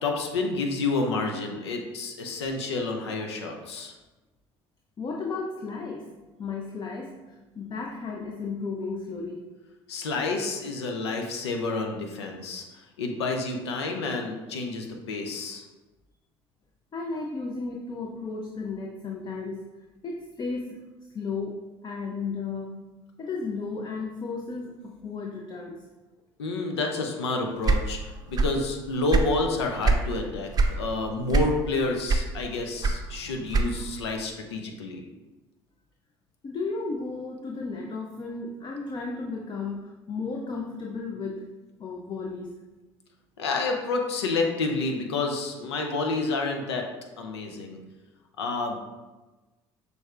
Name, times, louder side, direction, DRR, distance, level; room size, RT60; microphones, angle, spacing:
voice 1, 0.0-3.9 9.9-15.6 26.4-30.5 30.8-35.0 43.4-46.9 47.2-47.8 48.4-48.8, left 3 dB, 85° left, 3 dB, 0.6 m, -29 dB
voice 2, 5.0-6.1 6.4-9.5 16.9-19.8 20.0-20.8 21.1-22.7 23.2-25.8 36.4-41.5 41.8-42.6, left 4 dB, 35° left, 0 dB, 0.6 m, -34 dB
sound 1, 27.6-28.7 28.9-30.1 30.5-30.8 31.3-31.7 32.1-34.0, right 3 dB, 30° right, 0.6 m, -23 dB
6.1 x 3.4 x 2.4 m, 1.2 s
hypercardioid pair, 60°, 14 cm